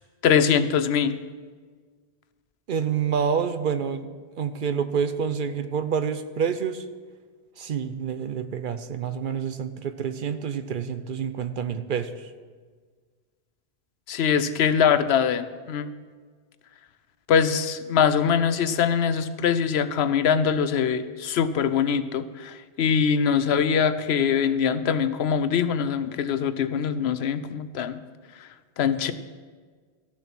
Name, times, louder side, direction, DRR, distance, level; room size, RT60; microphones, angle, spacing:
voice 1, 0.2-1.2 14.1-15.9 17.3-28.0 28.8-29.1, left 7 dB, 75° left, 13 dB, 0.9 m, -23 dB
voice 2, 2.7-6.9 7.6-12.3, right 7 dB, 60° right, 11 dB, 0.7 m, -28 dB
14.0 x 6.9 x 5.9 m, 1.5 s
omnidirectional pair, 1.1 m